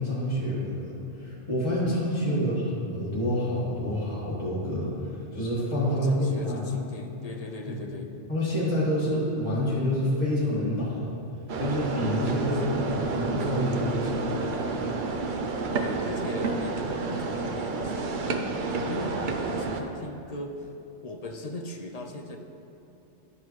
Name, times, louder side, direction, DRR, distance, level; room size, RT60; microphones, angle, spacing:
voice 1, 0.0-2.6 2.9-6.6 7.7-7.8 8.3-11.1 11.6-14.2, equal, 25° left, -9 dB, 1.8 m, -28 dB
voice 2, 2.3-2.7 5.8-8.1 12.5-12.6 15.7-20.7 21.0-22.4, left 2 dB, 55° left, 3 dB, 0.4 m, -39 dB
sound 1, 11.5-19.8, right 3 dB, 55° right, 0.6 m, -30 dB
12.0 x 5.6 x 3.1 m, 3.0 s
omnidirectional pair, 1.2 m